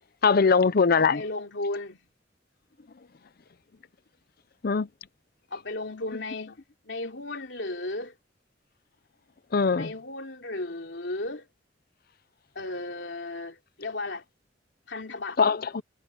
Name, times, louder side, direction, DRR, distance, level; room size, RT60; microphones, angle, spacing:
voice 1, 0.2-1.2 4.6-4.9 9.5-9.9 15.4-15.8, left 5 dB, 55° left, 0.6 m, -21 dB
voice 2, 0.9-2.0 5.5-8.1 9.8-11.5 12.5-14.2 14.9-15.4, left 2 dB, 70° left, 3.1 m, -35 dB
head